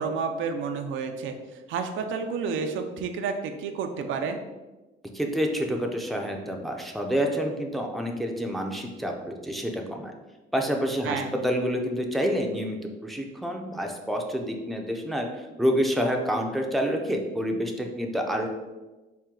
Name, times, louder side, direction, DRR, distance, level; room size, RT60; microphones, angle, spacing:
voice 1, 0.0-1.3 1.7-4.4 11.1-11.3, right 5 dB, 80° right, 6 dB, 0.4 m, -30 dB
voice 2, 5.1-10.1 10.5-15.3 15.6-18.5, equal, ahead, 2 dB, 0.5 m, -28 dB
4.3 x 2.2 x 3.7 m, 1.1 s
cardioid pair, 90°, 20 cm